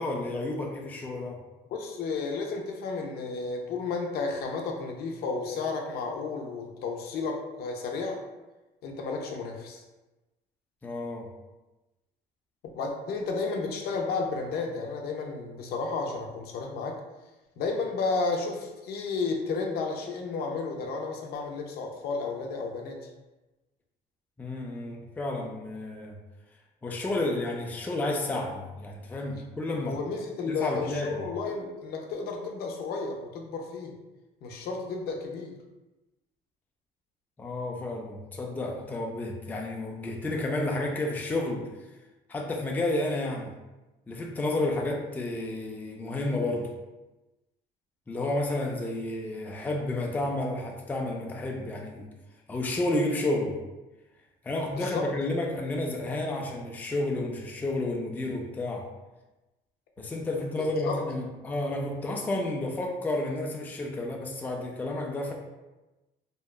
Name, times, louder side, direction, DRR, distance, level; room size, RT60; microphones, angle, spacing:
voice 1, 0.0-1.4 10.8-11.3 24.4-26.2 26.8-30.0 30.5-31.2 37.4-41.7 42.3-43.5 44.1-46.7 48.1-52.1 52.5-53.6 54.4-58.9 60.0-65.3, left 2 dB, 10° left, 0 dB, 0.3 m, -31 dB
voice 2, 1.7-8.2 8.8-9.8 12.7-17.0 17.6-23.1 29.8-34.0 34.4-35.6 54.8-55.0 60.6-61.0, left 4 dB, 70° left, 2 dB, 0.5 m, -32 dB
2.8 x 2.2 x 2.2 m, 1.1 s
cardioid pair, 110°, 17 cm